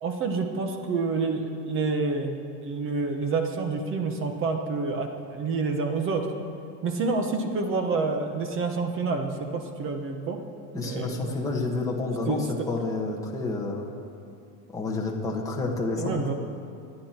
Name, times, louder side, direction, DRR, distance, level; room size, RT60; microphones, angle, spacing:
voice 1, 0.0-2.4 2.6-6.3 6.8-10.4 10.7-11.4 12.3-12.7 16.0-16.3, right 4 dB, 25° right, 5 dB, 1.2 m, -28 dB
voice 2, 10.7-13.9 14.7-16.2, left 3 dB, 5° left, -2 dB, 1.4 m, -29 dB
26.5 x 10.5 x 4.5 m, 2.5 s
supercardioid pair, 165°, 48 cm